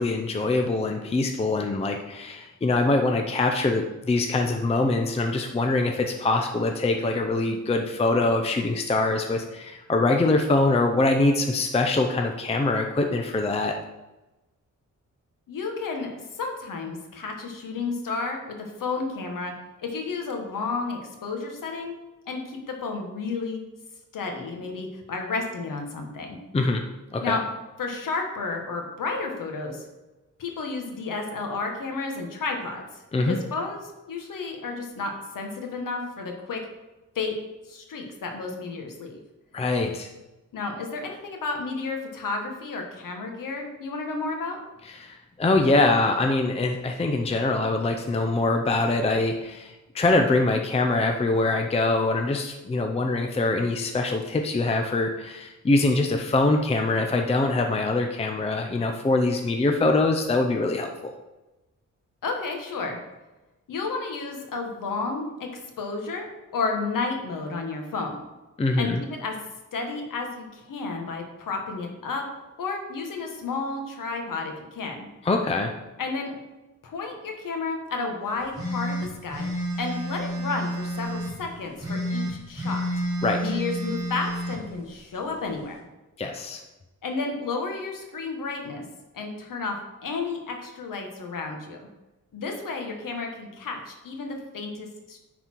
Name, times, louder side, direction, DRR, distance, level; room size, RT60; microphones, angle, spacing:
voice 1, 0.0-13.7 26.5-26.8 27.1-27.4 33.1-33.4 39.5-40.1 44.8-61.1 68.6-69.0 75.2-75.7 83.2-83.4 86.2-86.6, left 2 dB, 20° left, 3 dB, 0.5 m, -24 dB
voice 2, 15.5-19.5 19.8-22.0 22.3-23.6 24.1-26.4 27.2-27.4 27.8-29.8 30.4-33.0 33.3-33.8 34.1-36.6 37.1-37.3 37.7-39.2 40.5-44.6 62.2-63.0 63.7-65.5 65.8-66.3 66.5-68.2 68.8-69.3 69.7-72.2 72.6-75.1 76.0-76.3 76.8-82.8 83.4-85.8 87.0-88.8 89.1-89.7 90.0-91.8 92.3-95.2, left 4 dB, 80° left, 3 dB, 1.5 m, -32 dB
sound 1, 78.5-81.3 81.8-84.6, equal, 10° right, 2.5 m, -30 dB
9.9 x 4.2 x 4.5 m, 1.1 s
wide cardioid pair, 140°, 32 cm